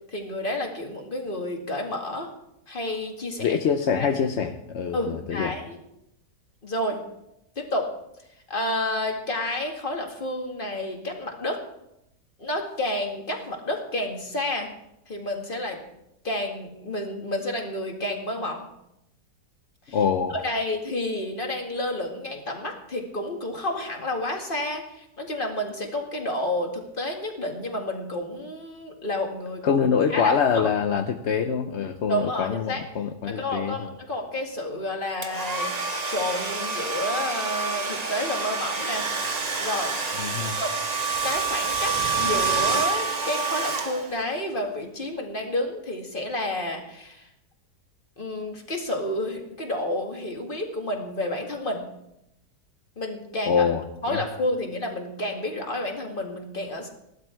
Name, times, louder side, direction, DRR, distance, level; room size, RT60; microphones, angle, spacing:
voice 1, 0.1-2.3 2.7-3.6 4.0-4.1 4.9-5.8 6.6-7.0 7.6-7.9 8.5-11.6 12.4-14.7 15.1-15.8 16.2-18.7 19.9-20.0 20.4-29.6 30.1-30.7 32.1-32.8 33.3-35.7 36.1-39.1 39.6-40.0 40.6-40.7 41.2-47.3 48.2-51.8 53.0-53.7 54.0-56.9, left 1 dB, 30° left, 2 dB, 2.1 m, -30 dB
voice 2, 3.4-5.6 19.9-20.4 29.6-33.9 40.2-40.6 53.5-53.8 54.1-54.3, left 6 dB, 55° left, 5 dB, 0.8 m, -25 dB
Domestic sounds home sounds, 35.2-44.4, right 4 dB, 30° right, 0.9 m, -27 dB
15.5 x 12.0 x 4.6 m, 0.83 s
omnidirectional pair, 1.8 m